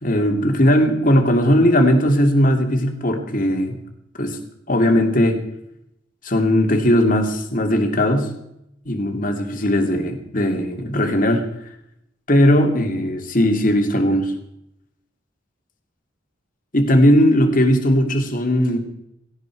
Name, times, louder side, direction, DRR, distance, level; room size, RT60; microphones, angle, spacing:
voice 1, 0.0-3.8 4.2-4.4 4.7-5.4 6.2-8.3 8.9-11.4 12.3-14.3 16.7-18.8, equal, 40° left, 4 dB, 2.6 m, -18 dB
17.5 x 16.5 x 4.8 m, 0.80 s
head